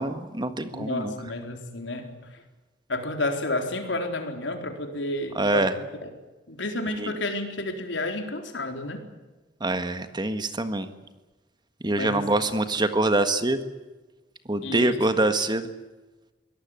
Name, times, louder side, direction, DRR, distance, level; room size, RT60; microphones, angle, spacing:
voice 1, 0.0-1.1 5.3-5.7 7.0-7.1 9.6-10.9 11.8-13.7 14.5-15.7, right 2 dB, 25° right, 10 dB, 1.6 m, -25 dB
voice 2, 0.7-2.1 2.3-2.4 2.9-6.1 6.5-9.0 12.0-12.2 14.6-14.9, left 2 dB, 75° left, 5 dB, 4.2 m, -31 dB
23.0 x 18.0 x 9.9 m, 1.2 s
head